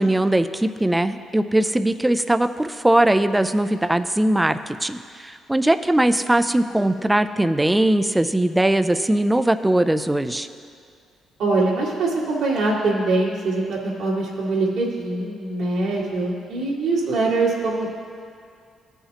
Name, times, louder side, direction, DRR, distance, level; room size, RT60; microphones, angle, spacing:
voice 1, 0.0-5.0 5.2-10.5, right 1 dB, 10° right, 10 dB, 0.3 m, -20 dB
voice 2, 11.4-17.9, right 2 dB, 80° right, -6 dB, 2.0 m, -23 dB
14.5 x 5.7 x 2.9 m, 2.3 s
cardioid pair, 90°, 0 cm